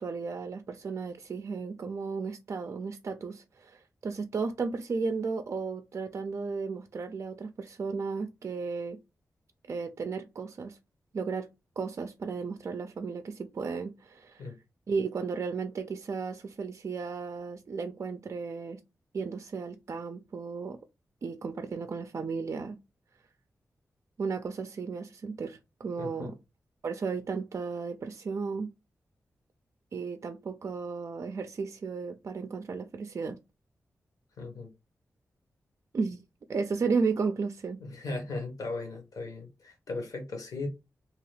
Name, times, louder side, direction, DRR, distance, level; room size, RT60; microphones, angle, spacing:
voice 1, 0.0-9.0 9.7-10.8 11.1-11.5 11.8-14.5 14.9-18.8 19.1-20.8 21.2-22.8 24.2-26.4 26.8-28.7 29.9-33.4 35.9-36.2 36.5-37.8, right 4 dB, 55° right, 0.4 m, -34 dB
voice 2, 26.0-26.3 34.4-34.7 37.8-40.7, left 3 dB, 75° left, 1.2 m, -37 dB
2.8 x 2.3 x 3.2 m
cardioid pair, 70°, 6 cm